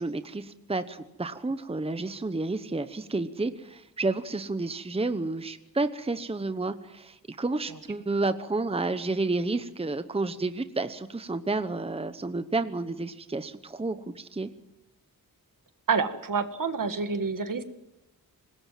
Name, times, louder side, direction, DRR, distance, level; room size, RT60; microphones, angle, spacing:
voice 1, 0.0-14.5, right 3 dB, 15° right, 11 dB, 0.9 m, -30 dB
voice 2, 15.9-17.6, right 5 dB, 60° right, 9 dB, 1.9 m, -28 dB
25.5 x 20.5 x 7.6 m, 0.89 s
wide cardioid pair, 125°, 36 cm